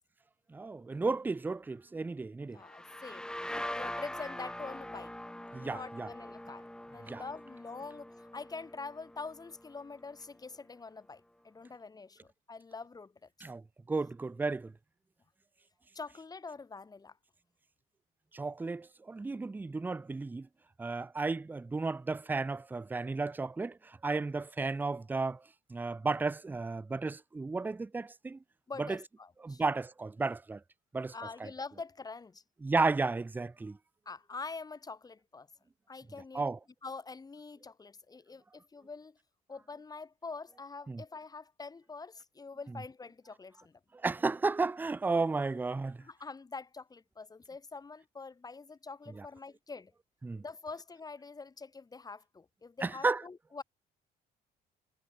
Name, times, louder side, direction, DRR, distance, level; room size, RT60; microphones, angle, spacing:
voice 1, 0.5-2.6 5.5-6.1 7.1-7.2 13.4-13.6 13.9-14.7 18.3-20.5 20.8-25.4 25.7-28.4 28.8-29.0 29.4-30.6 30.9-31.1 31.4-31.5 32.6-33.8 36.3-36.6 40.9-41.0 44.0-46.0 49.2-49.3 50.2-50.4 52.8-53.2, right 3 dB, 10° right, 0.4 m, -33 dB
voice 2, 2.5-5.1 5.6-13.3 15.9-17.2 28.7-29.6 31.1-32.4 34.1-35.5 35.9-36.4 36.8-39.2 39.5-43.8 46.0-49.9 50.4-53.6, left 4 dB, 20° left, 2.7 m, -45 dB
sound 1, 2.6-10.2, left 1 dB, 5° left, 3.1 m, -43 dB
cardioid pair, 110°, 17 cm